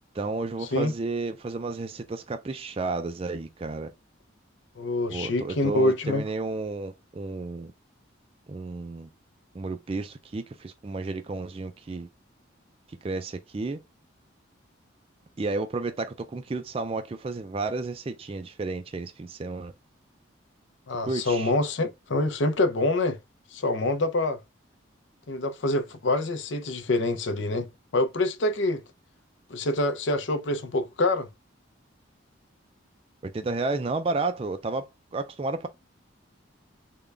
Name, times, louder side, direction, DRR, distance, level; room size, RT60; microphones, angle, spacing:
voice 1, 0.1-3.9 5.1-7.7 8.5-9.1 9.5-12.1 13.0-13.8 15.4-19.7 21.1-21.5 33.2-35.7, right 3 dB, 30° right, 0.3 m, -32 dB
voice 2, 4.8-6.2 20.9-23.2 23.5-24.4 25.3-27.7 27.9-28.8 29.5-31.3, left 2 dB, 65° left, 0.6 m, -26 dB
3.7 x 2.2 x 3.2 m
head